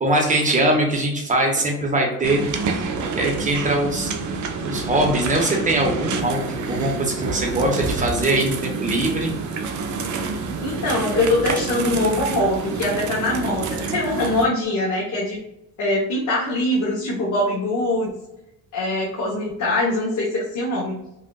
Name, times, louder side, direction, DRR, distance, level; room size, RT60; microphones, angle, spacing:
voice 1, 0.0-2.4 3.1-4.1 4.6-9.3, right 1 dB, 20° right, 0 dB, 0.9 m, -21 dB
sound 1, 2.2-14.4, right 4 dB, 45° right, 0.5 m, -28 dB
voice 2, 10.6-15.4 15.8-18.1 18.7-20.9, left 1 dB, 45° left, -5 dB, 1.0 m, -23 dB
5.2 x 2.4 x 2.3 m, 0.85 s
cardioid pair, 160°, 41 cm